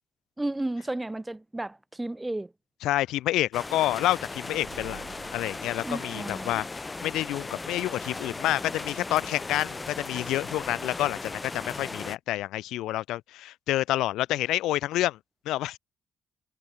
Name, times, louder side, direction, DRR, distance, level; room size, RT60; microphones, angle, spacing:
voice 1, 0.4-2.5 5.8-6.5, right 2 dB, 10° right, 0.4 m, -33 dB
voice 2, 2.8-5.0 5.3-15.2 15.5-15.8, left 15 dB, 90° left, 0.4 m, -28 dB
sound 1, 3.5-12.2, left 3 dB, 20° left, 1.8 m, -37 dB
sound 2, 4.5-10.1, right 14 dB, 85° right, 1.9 m, -54 dB
cardioid pair, 90°, 0 cm